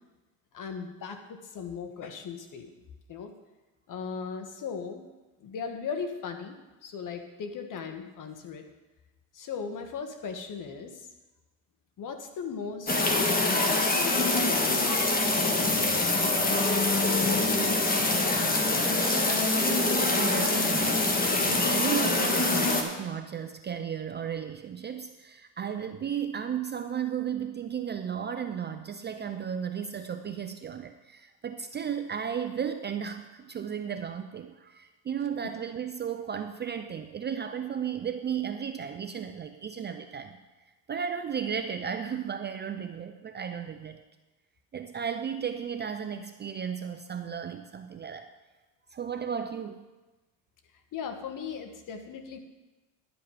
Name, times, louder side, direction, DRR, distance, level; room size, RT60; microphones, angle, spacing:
voice 1, 0.5-2.7 3.1-3.3 3.9-5.0 5.4-6.6 6.8-8.7 9.3-11.0 12.0-14.9 50.9-52.4, left 6 dB, 45° left, 6 dB, 1.4 m, -37 dB
sound 1, 12.9-22.8, left 2 dB, 20° left, 1.4 m, -25 dB
voice 2, 18.6-21.1 21.4-40.4 40.9-44.0 44.7-48.3 48.9-49.8, right 8 dB, 25° right, 8 dB, 0.5 m, -34 dB
11.5 x 8.2 x 5.0 m, 1.1 s
supercardioid pair, 105°, 44 cm